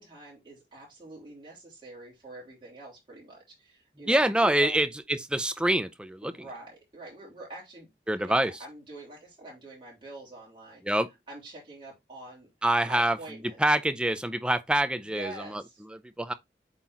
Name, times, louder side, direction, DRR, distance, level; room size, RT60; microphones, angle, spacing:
voice 1, 0.0-4.8 6.2-7.9 8.2-12.5 12.8-13.6 15.0-15.8, right 2 dB, 30° right, 3.3 m, -45 dB
voice 2, 4.1-4.9 5.3-6.2 8.1-8.5 10.9-11.1 12.6-13.2 13.6-15.3 16.2-16.3, right 1 dB, 5° right, 0.4 m, -25 dB
8.1 x 3.9 x 3.0 m
head